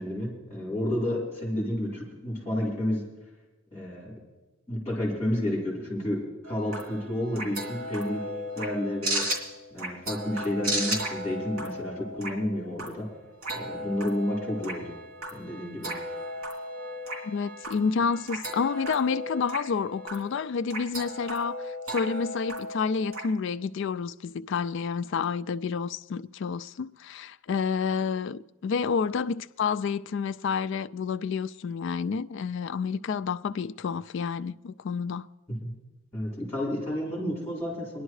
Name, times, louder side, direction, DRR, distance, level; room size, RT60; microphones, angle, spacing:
voice 1, 0.0-3.0 3.7-4.1 4.7-8.3 8.5-9.2 9.7-13.1 13.5-14.9 15.3-15.9 35.5-35.7 36.1-38.0, left 1 dB, 10° left, 4.2 m, -31 dB
sound 1, 6.4-23.2, right 1 dB, 90° right, 2.9 m, -35 dB
voice 2, 17.2-35.3, left 5 dB, 55° left, 0.3 m, -29 dB
23.5 x 11.0 x 3.2 m
head